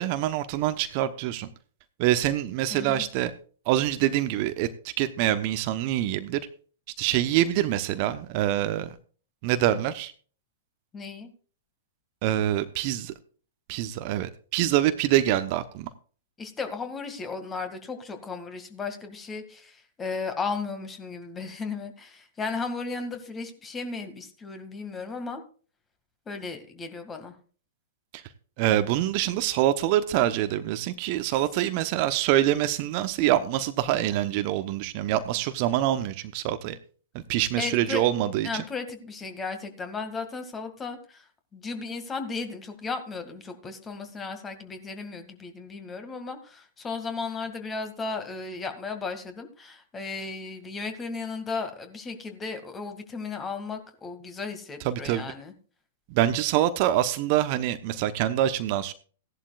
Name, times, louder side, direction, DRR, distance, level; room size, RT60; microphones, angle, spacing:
voice 1, 0.0-1.5 2.0-3.3 3.7-4.7 5.0-6.4 7.0-8.9 9.4-10.1 12.2-13.1 13.7-15.9 28.1-28.2 28.6-36.8 37.3-38.6 54.8-55.2 56.1-58.9, right 13 dB, 45° right, 11 dB, 0.9 m, -25 dB
voice 2, 2.7-3.0 10.9-11.3 16.4-25.4 26.3-27.4 37.6-38.0 38.4-41.3 41.5-55.5, left 4 dB, 20° left, 7 dB, 2.1 m, -35 dB
16.5 x 11.5 x 2.4 m, 0.40 s
figure-of-eight pair, 110°, 0 cm